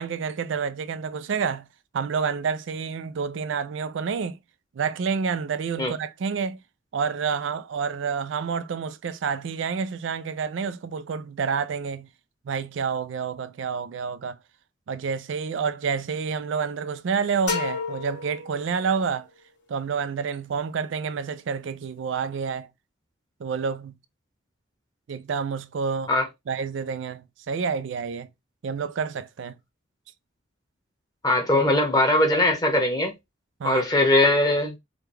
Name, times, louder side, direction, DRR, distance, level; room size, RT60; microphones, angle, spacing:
voice 1, 0.0-1.6 1.9-4.4 4.8-6.6 6.9-12.1 12.5-14.4 14.9-19.3 19.7-22.7 23.4-23.9 25.1-26.1 26.5-28.3 28.6-29.6 33.6-33.8, right 6 dB, 75° right, 0.4 m, -28 dB
sound 1, 17.5-19.2, left 5 dB, 70° left, 2.2 m, -32 dB
voice 2, 31.2-33.1 33.6-34.8, left 1 dB, 20° left, 1.1 m, -20 dB
4.9 x 2.3 x 3.3 m
head